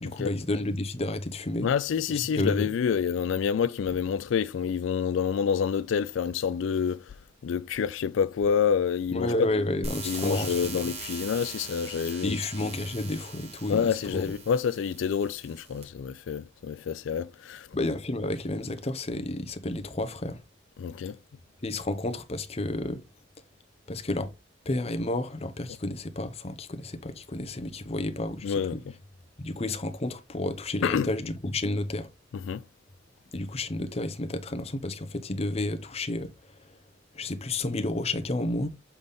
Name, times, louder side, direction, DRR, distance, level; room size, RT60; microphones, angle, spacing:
voice 1, 0.0-1.7 2.1-2.7 9.1-10.8 12.2-14.3 17.7-20.4 21.6-23.0 23.9-24.3 24.7-28.8 29.4-32.1 33.3-36.3 37.1-38.7, left 2 dB, 35° left, 0.8 m, -31 dB
voice 2, 1.6-7.1 7.4-9.5 10.0-12.4 13.7-17.7 20.8-21.2 28.4-28.8 30.8-31.1 32.3-32.6, left 7 dB, 85° left, 0.3 m, -28 dB
sound 1, 9.8-15.8, right 3 dB, 35° right, 1.8 m, -41 dB
7.0 x 4.0 x 3.4 m
head